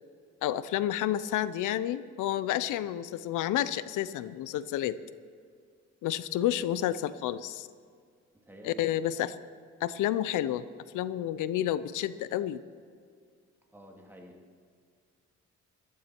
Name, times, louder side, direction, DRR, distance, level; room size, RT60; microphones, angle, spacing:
voice 1, 0.4-5.0 6.0-7.7 8.6-9.3 9.8-10.6 10.9-12.6, left 12 dB, 85° left, 16 dB, 0.6 m, -30 dB
voice 2, 8.5-9.1 13.7-14.4, equal, 5° right, -1 dB, 2.6 m, -50 dB
15.5 x 12.0 x 4.5 m, 2.2 s
cardioid pair, 90°, 30 cm